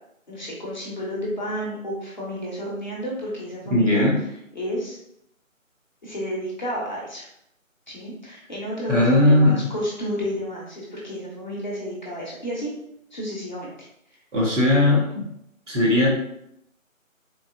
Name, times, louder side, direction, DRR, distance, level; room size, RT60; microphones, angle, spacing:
voice 1, 0.3-4.0 4.5-5.0 6.0-7.3 7.9-12.7 13.1-13.7, equal, 35° left, -5 dB, 0.8 m, -31 dB
voice 2, 3.7-4.2 8.9-9.7 14.3-15.3 15.7-16.1, left 1 dB, 60° right, -3 dB, 1.4 m, -18 dB
3.7 x 2.7 x 2.6 m, 0.76 s
figure-of-eight pair, 160°, 41 cm